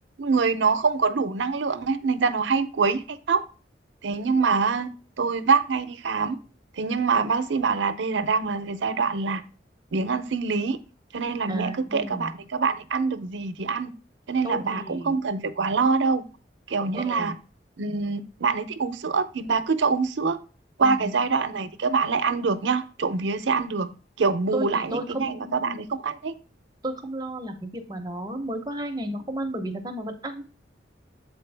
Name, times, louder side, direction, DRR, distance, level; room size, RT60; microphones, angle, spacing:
voice 1, 0.2-3.4 4.0-4.9 5.2-6.4 6.8-9.4 9.9-10.8 11.1-13.9 14.3-16.2 16.7-17.3 17.8-20.4 20.8-23.9 24.2-26.3, right 4 dB, 80° right, 0.6 m, -25 dB
voice 2, 11.5-12.3 14.4-15.2 16.9-17.4 20.8-21.1 24.5-25.8 26.8-30.4, right 1 dB, 20° right, 0.7 m, -33 dB
7.5 x 4.4 x 3.3 m
head